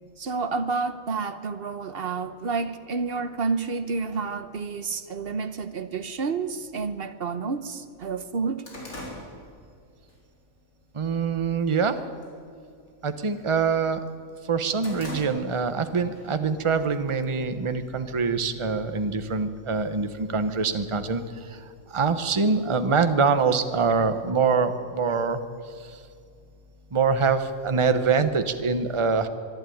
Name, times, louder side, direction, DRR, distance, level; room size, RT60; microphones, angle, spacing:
voice 1, 0.2-8.6, right 4 dB, 50° right, 12 dB, 1.0 m, -29 dB
sound 1, 7.3-7.4 7.8-10.2 10.6-10.9 11.3-11.8 12.1-12.4 12.7-13.9 14.3-15.8 16.2-16.3 17.2-18.1, left 1 dB, 85° left, 4.6 m, -41 dB
voice 2, 10.9-12.0 13.0-14.0 14.4-25.4 25.8-26.0 26.9-29.3, right 5 dB, 25° right, 9 dB, 0.9 m, -24 dB
24.0 x 11.5 x 9.3 m, 2.4 s
omnidirectional pair, 1.4 m